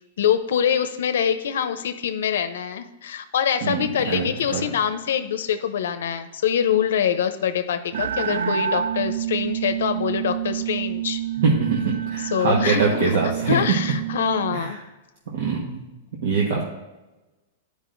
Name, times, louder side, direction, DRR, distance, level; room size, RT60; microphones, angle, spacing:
voice 1, 0.2-11.2 12.3-13.2 13.5-14.8, left 8 dB, 80° left, 9 dB, 0.6 m, -24 dB
voice 2, 3.6-4.6 11.4-13.8 14.5-14.7 15.3-15.8 16.2-16.6, right 4 dB, 65° right, -2 dB, 1.2 m, -23 dB
sound 1, 7.9-14.6, right 10 dB, 85° right, 0.3 m, -28 dB
11.0 x 5.1 x 2.6 m, 1.1 s
supercardioid pair, 165°, 0 cm